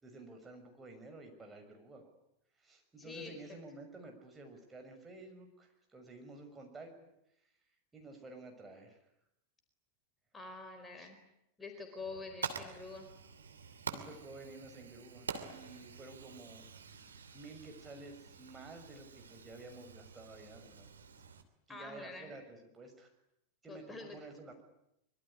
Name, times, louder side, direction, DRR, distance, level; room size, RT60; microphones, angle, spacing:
voice 1, 0.0-2.1 2.6-6.9 7.9-9.0 11.0-11.1 13.9-16.7 17.3-20.9 21.7-23.1 23.6-24.6, right 2 dB, 15° right, 3 dB, 6.4 m, -51 dB
voice 2, 3.0-3.3 10.3-11.2 11.6-13.1 21.7-22.3 23.7-24.2, left 3 dB, 15° left, 5 dB, 4.4 m, -46 dB
Fire, 12.0-21.4, right 6 dB, 70° right, 2.9 m, -47 dB
25.0 x 23.5 x 10.0 m, 0.81 s
figure-of-eight pair, 90°, 0 cm